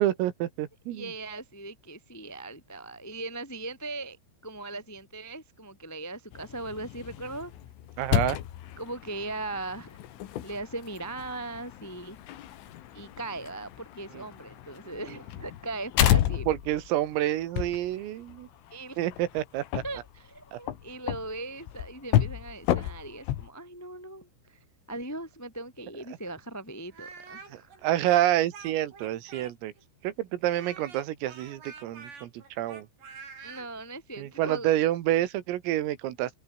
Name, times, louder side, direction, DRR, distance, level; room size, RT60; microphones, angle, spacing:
voice 1, 0.0-1.1 8.0-8.4 16.5-18.5 19.0-19.8 20.5-20.6 27.5-29.7 30.0-32.9 34.2-36.3, right 14 dB, 85° right, 4.4 m, -28 dB
voice 2, 0.9-4.2 4.4-7.5 8.8-10.0 10.4-12.2 12.9-16.5 18.7-19.0 19.8-24.6 24.9-27.8 33.4-34.7, right 2 dB, 20° left, 0.4 m, -39 dB
sound 1, 6.3-23.5, left 12 dB, 75° left, 4.4 m, -31 dB
Speech, 26.9-29.8 30.4-33.7, right 5 dB, 55° right, 8.5 m, -46 dB
omnidirectional pair, 5.9 m